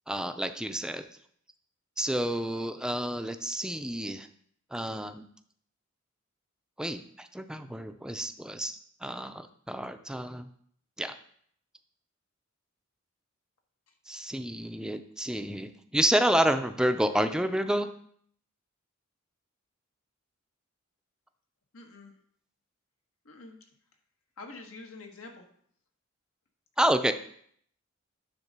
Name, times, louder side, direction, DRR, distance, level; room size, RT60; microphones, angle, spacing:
voice 1, 0.1-1.0 2.0-4.3 4.7-5.3 6.8-10.5 11.0-11.1 14.1-17.9 26.8-27.1, right 1 dB, 5° right, 8 dB, 0.4 m, -29 dB
voice 2, 21.7-22.2 23.2-23.6 24.4-25.4, left 3 dB, 85° left, 3 dB, 1.5 m, -46 dB
10.0 x 3.8 x 6.6 m, 0.63 s
head